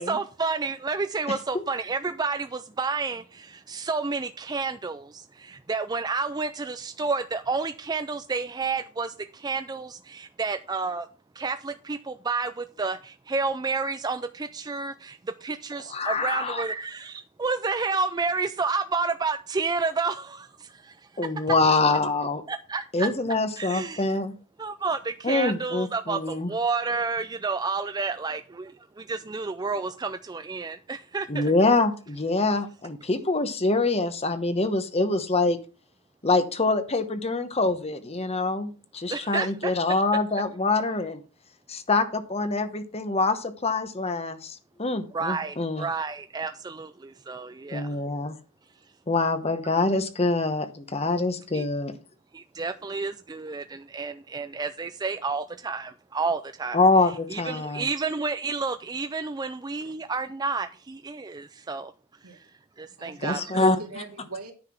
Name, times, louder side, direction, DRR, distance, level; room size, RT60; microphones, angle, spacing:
voice 1, 0.0-11.1 11.4-21.0 22.5-23.1 23.6-24.1 24.6-31.4 39.1-39.7 45.1-47.9 51.5-51.6 52.3-56.8 57.3-61.9 62.8-63.7, right 4 dB, 20° right, 0.4 m, -30 dB
voice 2, 1.3-1.6 15.9-16.6 21.2-22.4 22.9-24.3 25.2-26.5 31.3-35.6 36.2-41.2 41.7-45.9 47.7-48.4 49.1-51.9 56.7-57.9 63.2-63.8, left 3 dB, 30° left, 1.0 m, -25 dB
voice 3, 63.0-64.5, right 3 dB, 80° right, 2.5 m, -41 dB
9.8 x 5.8 x 5.9 m
head